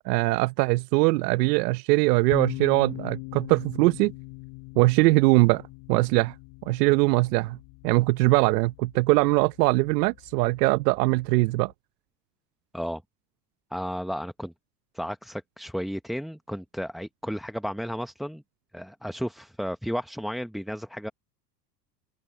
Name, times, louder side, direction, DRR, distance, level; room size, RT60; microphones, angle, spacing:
voice 1, 0.0-4.1 4.8-5.6 5.9-6.3 6.7-7.6 7.8-11.7, right 22 dB, 70° right, 0.8 m, -22 dB
sound 1, 2.3-11.7, left 31 dB, 60° left, 4.8 m, -41 dB
voice 2, 13.7-14.5 14.9-18.4 18.7-21.1, equal, ahead, 0.8 m, -33 dB
open air
supercardioid pair, 105°, 49 cm